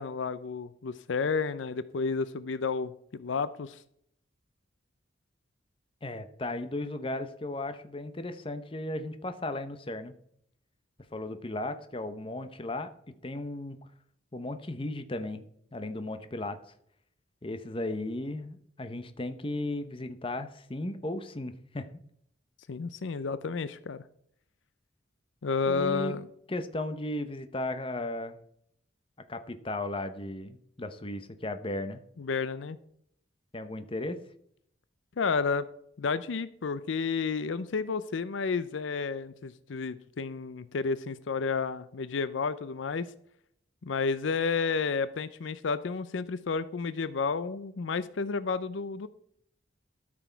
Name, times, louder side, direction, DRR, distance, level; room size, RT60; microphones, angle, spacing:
voice 1, 0.0-3.8 22.7-24.0 25.4-26.3 32.2-32.8 35.2-35.7 36.0-43.1 43.8-49.1, left 5 dB, 75° left, 15 dB, 0.5 m, -31 dB
voice 2, 6.0-10.1 11.1-12.9 13.2-13.8 14.3-15.5 15.7-16.6 17.4-21.9 25.7-26.2 26.5-28.4 29.3-32.0 33.5-34.2, left 1 dB, 30° left, 9 dB, 0.8 m, -35 dB
13.0 x 6.2 x 4.5 m, 0.68 s
head